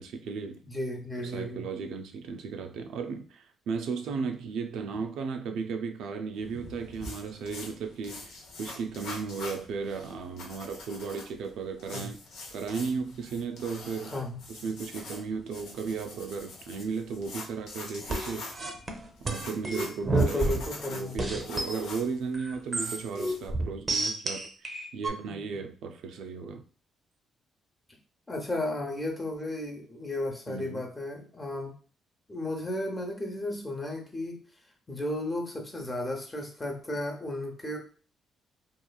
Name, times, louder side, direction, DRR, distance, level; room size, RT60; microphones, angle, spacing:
voice 1, 0.0-0.6 1.2-12.2 12.5-14.2 14.5-18.5 19.2-20.6 20.9-26.6 30.5-30.9, right 5 dB, 80° right, 0.3 m, -35 dB
voice 2, 0.6-1.6 10.0-10.2 11.9-12.1 14.1-14.4 20.0-21.4 25.2-25.6 28.3-31.7 32.3-34.4 34.9-37.8, left 1 dB, 20° left, 0.8 m, -34 dB
sound 1, 6.3-23.5, left 2 dB, 80° left, 0.7 m, -45 dB
sound 2, 18.1-20.8 21.2-21.8 22.3-25.1, right 2 dB, 30° right, 0.6 m, -30 dB
2.9 x 2.4 x 2.2 m
cardioid pair, 90°, 0 cm